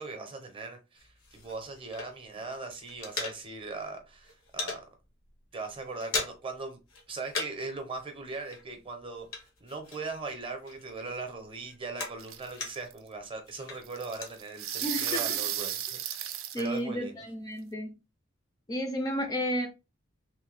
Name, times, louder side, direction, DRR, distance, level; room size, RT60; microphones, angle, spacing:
voice 1, 0.0-4.8 5.5-6.8 7.1-17.1, right 3 dB, 25° right, 0.7 m, -40 dB
sound 1, 0.9-2.4 2.7-3.8 4.1-4.8 5.3-5.4 5.7-6.6 6.9-7.7 8.0-10.3 10.6-13.0 13.4-14.4, left 3 dB, 80° left, 0.9 m, -38 dB
sound 2, 12.2-12.9 13.8-16.7, right 11 dB, 85° right, 0.4 m, -33 dB
voice 2, 14.8-15.4 16.5-17.9 18.7-19.7, equal, 20° left, 0.4 m, -32 dB
3.2 x 2.1 x 3.2 m
head